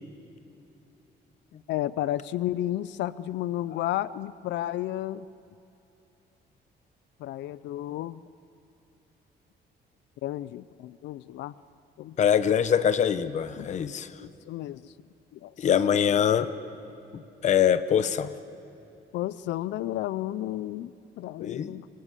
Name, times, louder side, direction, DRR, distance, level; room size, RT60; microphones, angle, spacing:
voice 1, 1.7-5.3 7.2-8.2 10.2-11.5 12.0-12.2 13.6-13.8 14.2-14.9 15.3-15.7 16.1-16.3 19.1-21.9, left 13 dB, 90° left, 17 dB, 0.5 m, -32 dB
voice 2, 12.2-14.1 15.6-16.5 17.1-18.3 21.4-21.8, left 8 dB, 40° left, 12 dB, 0.9 m, -24 dB
26.0 x 24.0 x 8.3 m, 2.9 s
cardioid pair, 170°, 18 cm